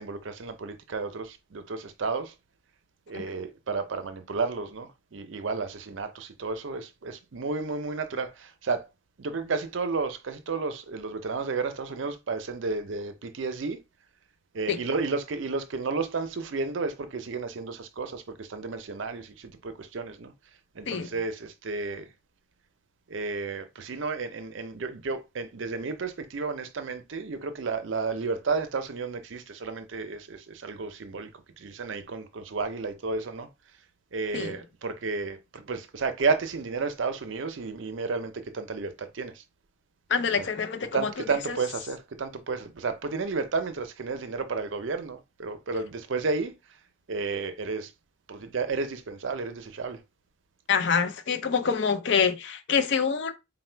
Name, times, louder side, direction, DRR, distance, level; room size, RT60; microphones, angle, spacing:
voice 1, 0.0-2.3 3.1-8.9 9.2-13.8 14.5-20.3 20.7-22.1 23.1-31.3 31.6-33.5 34.1-39.4 40.4-40.5 40.9-46.5 47.1-47.9 48.3-50.0, right 4 dB, 65° right, 0.5 m, -32 dB
voice 2, 40.1-41.1 41.5-41.6 50.7-53.3, left 6 dB, 55° left, 0.5 m, -26 dB
4.1 x 2.1 x 4.4 m
head